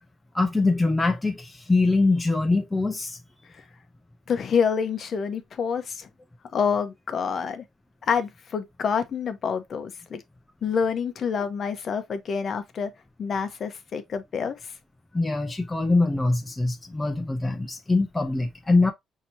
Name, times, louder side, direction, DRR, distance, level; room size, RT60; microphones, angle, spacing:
voice 1, 0.3-3.2 15.1-18.9, left 3 dB, 10° left, 0.5 m, -23 dB
voice 2, 4.3-6.1 6.5-7.6 8.0-10.2 10.6-12.9 13.2-14.7, left 6 dB, 40° left, 0.8 m, -27 dB
5.9 x 2.8 x 2.7 m
cardioid pair, 150°, 0 cm